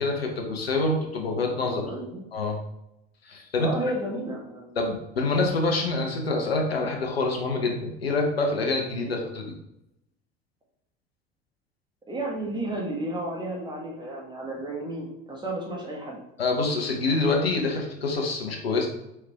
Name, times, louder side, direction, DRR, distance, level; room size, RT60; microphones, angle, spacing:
voice 1, 0.0-1.8 2.3-2.6 3.2-3.8 4.8-9.6 16.4-18.9, left 3 dB, 75° left, 2 dB, 0.8 m, -26 dB
voice 2, 1.6-2.2 3.6-4.8 9.0-9.1 12.1-16.2, right 1 dB, 15° right, -2 dB, 1.5 m, -32 dB
4.7 x 3.2 x 3.4 m, 0.85 s
figure-of-eight pair, 70°, 30 cm